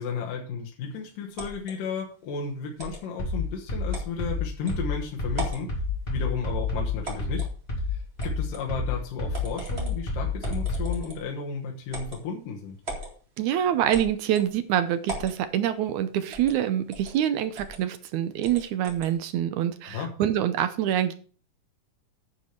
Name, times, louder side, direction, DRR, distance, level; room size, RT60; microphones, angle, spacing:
voice 1, 0.0-5.8 6.1-7.5 7.9-12.8 19.8-20.1, left 5 dB, 80° left, -1 dB, 3.0 m, -33 dB
sound 1, 1.4-1.7 2.8-3.0 3.9-4.1 4.7-4.8 5.3-5.7 7.0-7.5 8.2-8.6 9.3-10.0 10.4-11.3 11.9-12.2 12.8-13.1 13.9-14.5 15.1-15.4 16.3-16.6 16.9-17.1 17.5-17.8 18.4-19.1, right 2 dB, 20° right, 2.3 m, -37 dB
sound 2, 3.2-11.0, left 3 dB, 20° left, 2.1 m, -29 dB
voice 2, 13.4-21.1, right 10 dB, 75° right, 10 dB, 2.0 m, -26 dB
9.8 x 4.7 x 7.0 m, 0.41 s
omnidirectional pair, 3.8 m